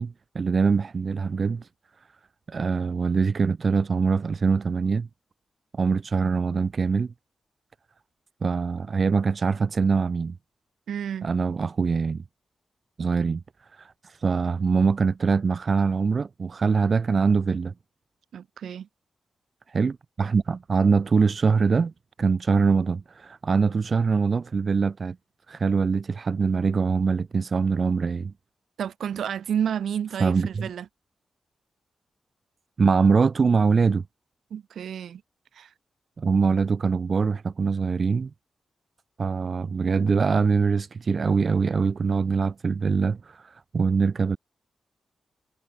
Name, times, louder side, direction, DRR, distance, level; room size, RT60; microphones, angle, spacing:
voice 1, 0.0-1.7 2.5-5.1 5.7-7.1 8.4-10.4 11.2-12.2 13.0-13.4 13.8-17.7 19.7-21.9 22.2-25.2 25.5-28.3 30.2-30.7 32.8-34.0 36.2-38.3 39.2-44.4, right 5 dB, 40° right, 0.7 m, -23 dB
voice 2, 10.9-11.3 18.3-18.9 28.8-30.9 34.5-35.2 35.5-35.7, right 8 dB, 85° right, 1.2 m, -30 dB
wide cardioid pair, 135°, 0 cm